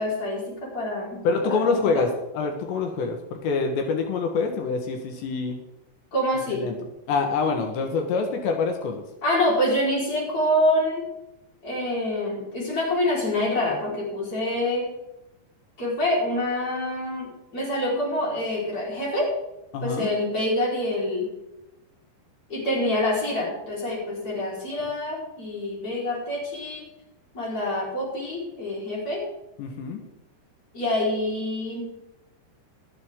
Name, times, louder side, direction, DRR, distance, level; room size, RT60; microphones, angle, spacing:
voice 1, 0.0-1.2 1.5-2.0 6.1-6.7 9.2-11.0 11.6-14.9 15.8-19.3 19.8-21.3 22.5-26.9 27.3-29.2 30.7-31.9, left 1 dB, 20° left, -4 dB, 4.2 m, -26 dB
voice 2, 1.3-5.6 6.5-6.8 7.1-9.1 19.7-20.1 29.6-30.0, left 4 dB, 80° left, 4 dB, 3.4 m, -26 dB
13.5 x 13.0 x 3.6 m, 0.92 s
omnidirectional pair, 5.1 m